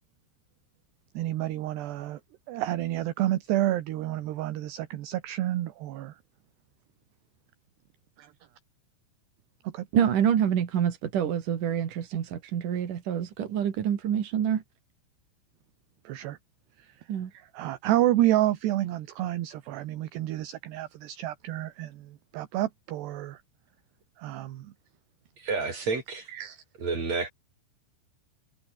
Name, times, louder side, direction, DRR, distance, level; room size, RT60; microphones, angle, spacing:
voice 1, 1.2-2.2 2.5-6.1 8.2-8.3 9.7-9.9 16.1-16.4 17.3-23.4 24.2-24.7 26.3-26.6, right 14 dB, 70° right, 3.3 m, -29 dB
voice 2, 9.9-14.6 17.1-17.3, right 9 dB, 55° right, 3.2 m, -26 dB
voice 3, 25.4-26.3 26.8-27.3, right 4 dB, 35° right, 6.9 m, -29 dB
omnidirectional pair, 5.3 m